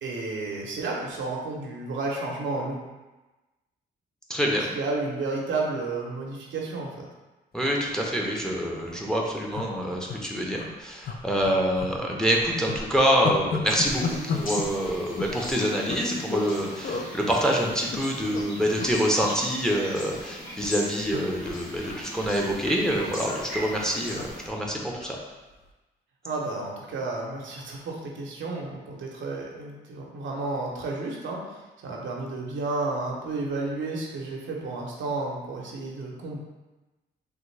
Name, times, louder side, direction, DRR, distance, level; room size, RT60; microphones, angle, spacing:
voice 1, 0.0-2.8 4.7-7.1 26.2-36.4, right 3 dB, 70° right, -2 dB, 0.7 m, -32 dB
voice 2, 4.3-4.7 7.5-25.2, equal, 5° left, -2 dB, 0.6 m, -26 dB
sound 1, 8.1-8.2 8.5-8.6 8.8-9.0 9.5-10.2 10.5-10.7 11.0-12.0 12.3-16.5 16.8-17.1 17.7-18.4 18.7-18.9 19.2-20.3 20.6-25.2 25.5-25.7, left 5 dB, 50° left, 0.4 m, -35 dB
sound 2, 13.6-24.5, left 1 dB, 75° left, 1.1 m, -39 dB
3.5 x 2.1 x 3.2 m, 1.1 s
supercardioid pair, 60°, 20 cm